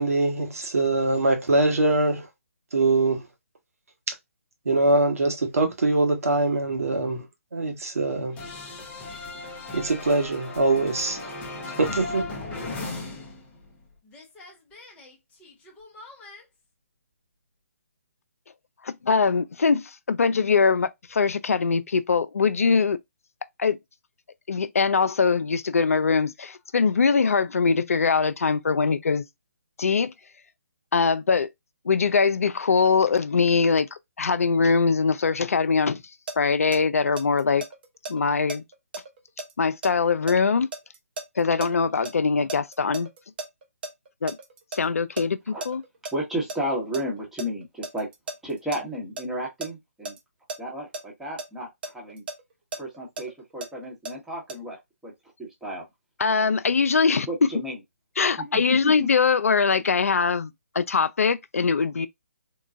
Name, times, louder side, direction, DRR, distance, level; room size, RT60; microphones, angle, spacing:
voice 1, 0.0-2.3 2.7-3.2 4.6-7.2 7.5-8.4 9.7-11.3 11.8-12.2, right 2 dB, 65° right, 1.2 m, -23 dB
sound 1, 8.4-13.8 14.1-16.4, left 3 dB, 15° left, 0.7 m, -37 dB
voice 2, 18.8-23.0 23.6-23.8 24.5-29.3 29.8-30.1 30.9-31.5 31.9-33.9 34.2-36.0 36.4-37.6 38.1-38.6 39.6-40.7 41.4-43.1 44.2-44.4 44.7-45.8 56.2-57.3 58.2-62.1, left 5 dB, 65° left, 0.4 m, -22 dB
sound 2, 36.3-42.1 42.5-44.8 45.2-45.3 45.6-46.1 46.5-49.7 50.0-50.2 50.5-50.6 50.9-51.0 51.4-54.1 54.5-54.6, right 2 dB, 40° right, 0.7 m, -35 dB
voice 3, 46.1-48.1 48.4-50.1 50.6-52.2 52.8-55.1 55.4-55.8 57.3-57.8 58.5-59.1, equal, 5° right, 1.0 m, -33 dB
3.8 x 2.2 x 2.4 m
figure-of-eight pair, 140°, 8 cm